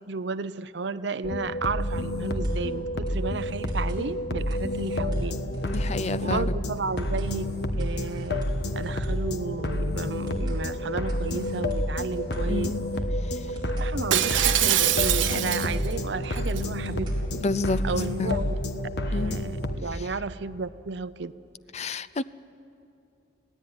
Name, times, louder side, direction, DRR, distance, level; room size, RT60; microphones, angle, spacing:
voice 1, 0.1-5.4 6.2-8.4 8.8-12.8 13.8-17.1 17.8-18.6 19.1-21.3, right 4 dB, 70° right, 14 dB, 0.6 m, -33 dB
sound 1, 1.2-19.8, left 1 dB, 60° left, 1.3 m, -29 dB
sound 2, 2.2-2.8 3.1-3.2 3.5-4.0 4.5-6.1 6.4-6.5 6.8-7.3 7.8-9.4 9.6-9.7 10.1-10.6 11.1-12.7 12.9-13.0 13.4-13.9 14.4-16.0 16.2-16.3 16.6-17.2 17.7-18.6, equal, 25° right, 4.4 m, -41 dB
voice 2, 5.6-6.5 12.5-12.8 17.4-17.8 18.2-18.4 19.1-19.4 21.7-22.2, left 3 dB, 35° left, 16 dB, 0.5 m, -29 dB
Shatter, 14.1-15.9 16.4-16.6, right 11 dB, 85° right, 1.0 m, -23 dB
26.5 x 17.5 x 9.8 m, 2.7 s
head